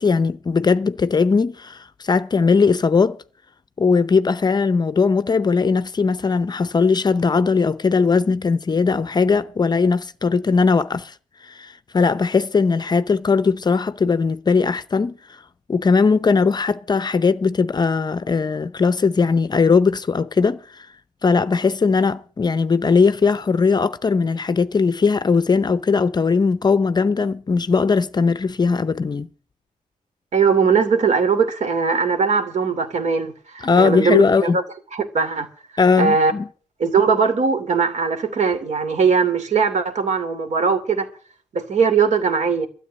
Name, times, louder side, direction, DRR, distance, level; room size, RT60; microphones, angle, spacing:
voice 1, 0.0-3.2 3.8-11.1 11.4-15.2 15.7-20.9 21.2-29.3 33.6-34.6 35.8-36.5, left 4 dB, 30° left, 0.6 m, -19 dB
voice 2, 30.3-34.6 34.9-35.5 36.0-36.3 36.8-41.1 41.5-42.7, right 5 dB, 60° right, 2.8 m, -20 dB
13.0 x 7.6 x 9.4 m
wide cardioid pair, 140°, 14 cm